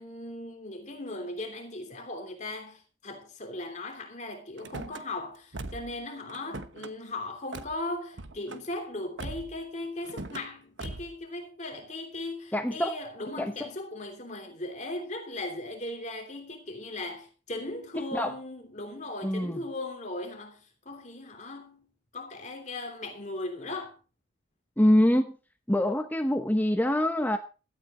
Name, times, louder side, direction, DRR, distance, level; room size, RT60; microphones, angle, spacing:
voice 1, 0.0-24.0, left 2 dB, 40° left, 3.1 m, -38 dB
Car / Slam, 4.6-5.0 5.5-6.0 6.3-6.9 7.5-7.7 8.1-8.7 9.2-9.6 10.0-10.5 10.8-11.2, right 2 dB, 90° right, 1.1 m, -40 dB
voice 2, 12.5-13.0 13.4-13.5 18.0-18.3 19.2-19.6 24.8-25.4 25.7-27.4, left 1 dB, 10° left, 0.9 m, -25 dB
16.5 x 13.0 x 3.8 m
head